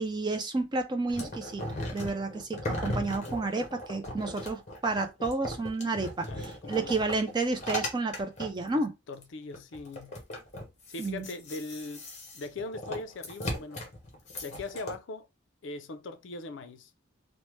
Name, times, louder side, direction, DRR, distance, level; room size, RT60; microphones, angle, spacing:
voice 1, 0.0-1.6 1.9-8.9 11.0-11.3, right 3 dB, 20° right, 0.3 m, -31 dB
sound 1, 1.1-8.7 9.2-9.3 9.5-15.0, left 1 dB, 35° left, 0.9 m, -37 dB
voice 2, 6.3-7.0 8.7-10.2 10.9-12.0 12.3-13.9 14.4-15.3 15.6-16.9, left 3 dB, 65° left, 0.4 m, -40 dB
3.2 x 2.0 x 3.0 m
head